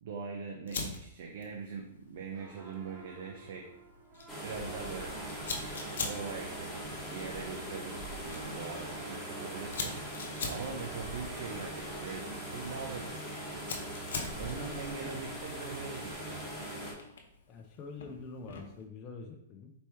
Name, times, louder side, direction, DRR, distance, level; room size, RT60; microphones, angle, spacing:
voice 1, 0.0-3.7 4.4-5.2 6.0-10.0 10.5-13.4 14.4-16.4, right 5 dB, 60° right, 1 dB, 0.6 m, -42 dB
Fire, 0.7-18.8, left 4 dB, 75° left, 0.7 m, -45 dB
sound 1, 2.3-13.9, right 3 dB, 30° right, 0.8 m, -54 dB
sound 2, 4.3-16.9, right 1 dB, ahead, 1.2 m, -41 dB
voice 2, 17.5-19.7, left 4 dB, 30° left, 2 dB, 0.5 m, -45 dB
4.3 x 2.9 x 3.4 m, 0.75 s
hypercardioid pair, 130°, 0 cm